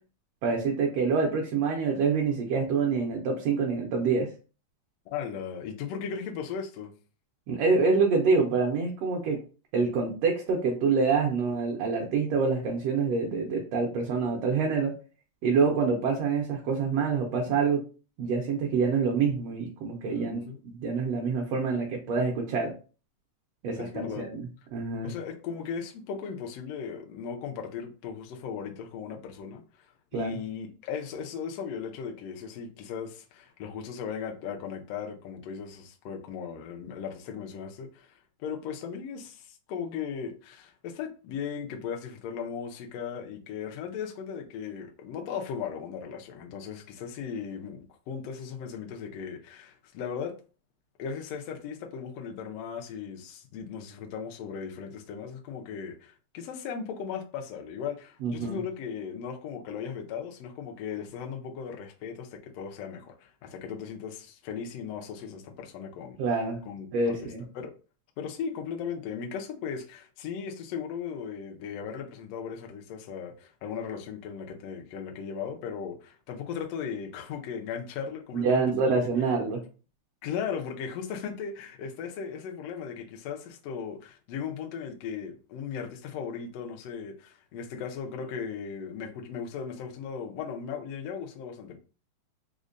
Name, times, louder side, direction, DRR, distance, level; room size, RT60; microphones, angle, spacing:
voice 1, 0.4-4.3 7.5-9.4 9.7-14.9 15.4-17.8 18.2-22.7 23.6-25.1 30.1-30.3 58.2-58.6 66.2-66.6 66.9-67.4 78.3-79.6, right 4 dB, 75° right, 1.5 m, -26 dB
voice 2, 5.1-6.9 20.1-20.6 23.8-24.2 25.0-29.6 30.1-50.3 51.0-66.2 66.7-67.7 68.2-79.1 80.2-91.8, left 7 dB, 75° left, 1.5 m, -37 dB
5.0 x 2.1 x 2.5 m
omnidirectional pair, 3.4 m